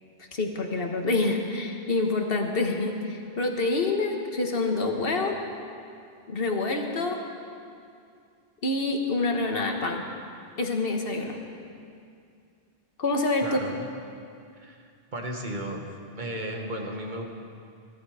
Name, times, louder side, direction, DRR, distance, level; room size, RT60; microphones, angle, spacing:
voice 1, 0.3-5.4 6.3-7.2 8.6-10.0 10.6-11.4 13.0-13.5, left 3 dB, 60° left, 2 dB, 1.7 m, -27 dB
voice 2, 13.4-13.9 14.5-15.8 16.1-17.2, right 1 dB, 45° right, 2 dB, 1.6 m, -34 dB
21.5 x 12.5 x 5.0 m, 2.4 s
omnidirectional pair, 1.1 m